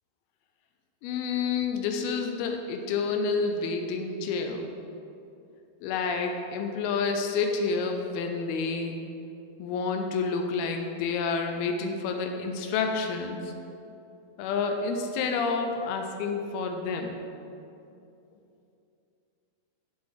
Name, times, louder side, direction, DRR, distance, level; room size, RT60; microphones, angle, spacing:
voice 1, 1.0-4.7 5.8-9.0 9.6-13.5 14.4-17.2, left 4 dB, 85° left, 4 dB, 2.5 m, -29 dB
12.0 x 4.1 x 4.8 m, 2.7 s
omnidirectional pair, 4.3 m